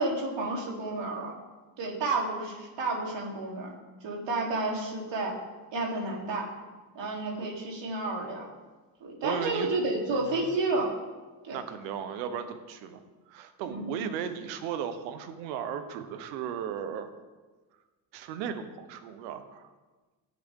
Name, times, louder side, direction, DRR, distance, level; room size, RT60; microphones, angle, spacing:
voice 1, 0.0-1.3 1.8-3.7 4.0-5.3 5.7-6.4 7.0-8.5 9.0-10.9 11.4-11.6 13.7-13.9, right 2 dB, 60° right, -2 dB, 3.7 m, -31 dB
voice 2, 7.0-7.5 9.2-9.7 10.1-10.5 11.5-13.0 13.3-17.1 18.1-19.7, right 8 dB, 90° right, 10 dB, 1.1 m, -36 dB
16.5 x 7.9 x 3.8 m, 1.3 s
supercardioid pair, 65°, 50 cm